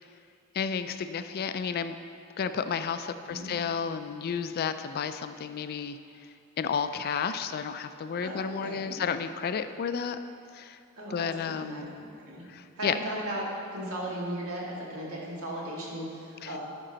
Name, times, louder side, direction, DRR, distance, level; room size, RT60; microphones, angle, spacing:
voice 1, 0.5-2.0 2.4-6.0 6.6-10.2 10.5-10.8 11.1-11.8 12.5-13.0 16.4-16.5, left 6 dB, 45° left, 10 dB, 0.3 m, -32 dB
voice 2, 8.2-9.0 11.0-11.9 12.2-12.4 12.8-13.5 13.7-16.6, right 1 dB, 75° right, -4 dB, 1.8 m, -36 dB
11.5 x 5.3 x 3.9 m, 2.7 s
head